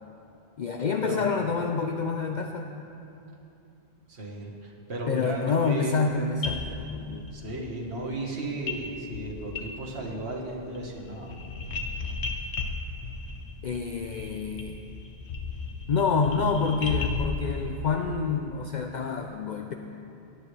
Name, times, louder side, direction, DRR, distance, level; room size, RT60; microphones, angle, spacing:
voice 1, 0.6-2.7 5.1-7.3 13.6-14.8 15.9-19.7, left 5 dB, 55° left, 5 dB, 0.5 m, -28 dB
voice 2, 4.1-6.0 7.3-11.3, right 2 dB, 80° right, -2 dB, 1.8 m, -34 dB
sound 1, 6.1-6.2 6.4-7.4 8.7-8.8 9.1-10.2 10.4-17.4, left 4 dB, 90° left, 1.2 m, -35 dB
17.5 x 10.0 x 3.3 m, 2.8 s
omnidirectional pair, 1.1 m